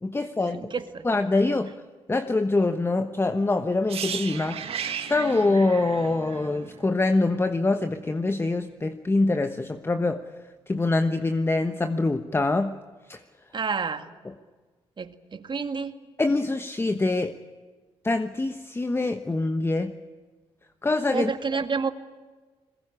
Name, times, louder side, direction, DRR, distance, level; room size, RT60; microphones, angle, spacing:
voice 1, 0.0-0.6 1.0-1.7 2.1-10.3 10.7-12.8 13.1-13.2 16.2-17.4 18.0-19.9 20.8-21.3, left 2 dB, 20° left, 9 dB, 1.2 m, -24 dB
voice 2, 0.6-1.0 13.5-14.0 15.0-16.1 21.1-21.9, right 5 dB, 45° right, 9 dB, 2.0 m, -29 dB
sound 1, 3.9-7.8 8.0-8.2, right 7 dB, 60° right, 1.8 m, -35 dB
21.5 x 20.5 x 9.8 m, 1.4 s
supercardioid pair, 60°, 11 cm